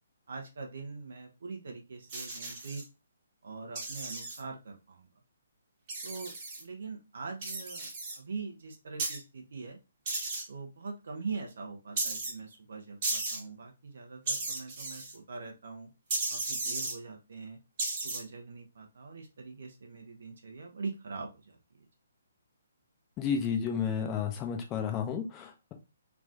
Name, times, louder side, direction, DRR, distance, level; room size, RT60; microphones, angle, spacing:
voice 1, 0.3-2.8 3.4-5.1 6.0-6.3 6.6-7.9 8.2-9.8 10.5-15.9 16.3-17.6 18.0-21.6, right 4 dB, 55° right, 0.9 m, -42 dB
sound 1, 2.1-2.8 3.7-4.4 5.9-6.6 7.4-8.2 9.0-9.2 10.1-10.4 12.0-12.3 13.0-13.4 14.3-15.1 16.1-16.9 17.8-18.2, right 2 dB, 35° right, 1.3 m, -34 dB
voice 2, 23.2-25.7, left 7 dB, 20° left, 0.6 m, -32 dB
3.7 x 2.5 x 3.5 m
figure-of-eight pair, 135°, 0 cm